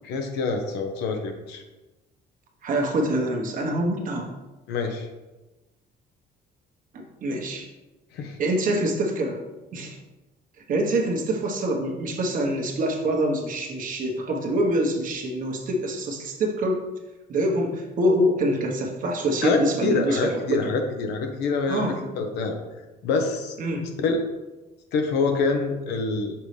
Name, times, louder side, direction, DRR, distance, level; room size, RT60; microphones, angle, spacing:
voice 1, 0.0-1.6 4.7-5.1 8.1-8.4 19.4-22.6 23.0-23.6 24.0-24.2 24.9-26.3, left 4 dB, 85° left, 4 dB, 1.0 m, -26 dB
voice 2, 2.6-4.3 6.9-7.7 8.4-9.4 9.7-10.0 10.7-16.8 17.3-20.2 20.5-20.7 21.7-21.9 23.6-23.9, right 1 dB, 55° right, 1 dB, 1.2 m, -25 dB
5.7 x 5.4 x 3.3 m, 1.1 s
cardioid pair, 110°, 17 cm